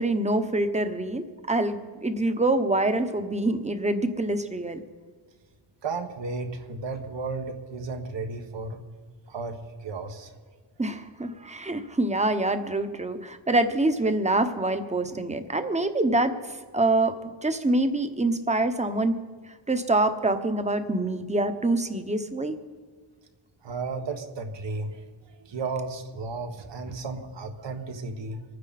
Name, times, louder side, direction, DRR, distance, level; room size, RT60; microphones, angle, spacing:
voice 1, 0.0-4.8 10.8-19.2 19.7-22.6, right 2 dB, 15° right, 8 dB, 1.1 m, -25 dB
voice 2, 5.8-8.8 9.3-10.3 23.6-28.4, right 3 dB, 65° right, 6 dB, 1.6 m, -34 dB
25.5 x 9.7 x 4.2 m, 1.5 s
wide cardioid pair, 115°, 46 cm